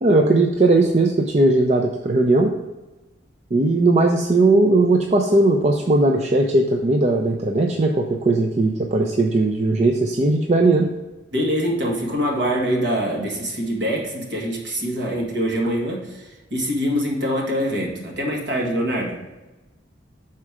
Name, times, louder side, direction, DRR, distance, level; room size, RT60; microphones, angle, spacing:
voice 1, 0.0-2.5 3.5-10.9, right 2 dB, 35° right, 1 dB, 0.4 m, -18 dB
voice 2, 11.3-19.2, equal, 60° right, -2 dB, 1.7 m, -24 dB
6.1 x 4.3 x 4.8 m, 1.1 s
head